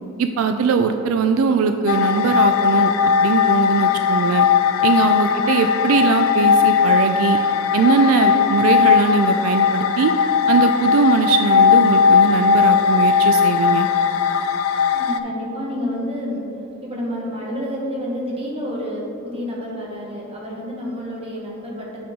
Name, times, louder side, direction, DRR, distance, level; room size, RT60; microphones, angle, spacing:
voice 1, 0.2-2.9 3.2-4.5 4.8-7.4 7.7-10.1 10.5-13.9, right 5 dB, 75° right, 7 dB, 0.3 m, -20 dB
sound 1, 1.9-15.2, left 6 dB, 75° left, 0.4 m, -17 dB
voice 2, 14.9-16.4 16.8-21.9, equal, 30° right, -4 dB, 1.3 m, -29 dB
7.6 x 5.3 x 3.6 m, 2.9 s
head